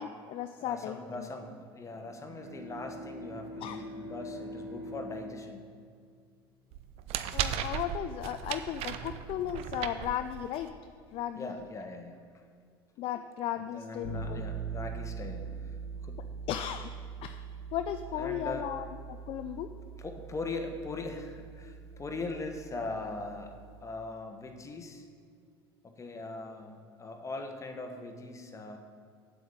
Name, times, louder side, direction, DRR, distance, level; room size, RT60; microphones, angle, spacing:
voice 1, 0.0-1.3 3.6-3.9 7.3-10.7 11.1-11.6 13.0-14.4 16.5-16.9 17.2-17.4 17.7-19.7, left 10 dB, 45° left, 9 dB, 0.4 m, -36 dB
voice 2, 0.6-5.6 11.4-12.2 13.6-15.5 16.0-16.2 18.2-18.7 20.0-23.5 23.8-25.1 25.8-28.8, left 3 dB, 25° left, 5 dB, 1.2 m, -40 dB
Bowed string instrument, 1.8-6.6, equal, 75° right, 1.5 m, -44 dB
sound 1, 6.7-10.7, right 10 dB, 50° right, 0.6 m, -36 dB
sound 2, 14.0-23.8, right 6 dB, 85° left, 1.4 m, -42 dB
8.5 x 7.7 x 5.3 m, 2.2 s
figure-of-eight pair, 65°, 13 cm